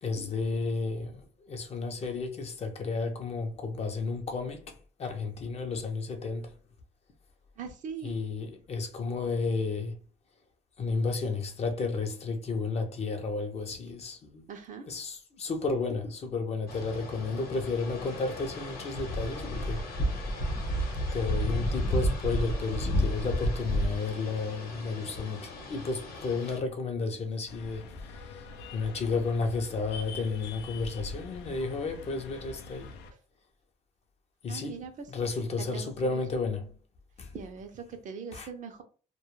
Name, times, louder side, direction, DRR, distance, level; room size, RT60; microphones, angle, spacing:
voice 1, 0.0-6.5 8.0-10.0 10.8-14.5 14.9-19.9 21.1-28.4 28.7-32.9 34.4-34.8 35.1-36.7 37.2-37.3 38.3-38.5, left 4 dB, 40° left, 0.5 m, -32 dB
voice 2, 7.6-8.2 14.5-14.9 20.8-20.9 34.5-35.1 35.7-36.2 37.3-38.8, right 6 dB, 50° right, 0.5 m, -41 dB
sound 1, 16.7-26.6, equal, 60° left, 0.9 m, -32 dB
sound 2, 27.5-33.1, left 3 dB, 90° left, 0.4 m, -44 dB
2.2 x 2.0 x 3.0 m
cardioid pair, 110°, 17 cm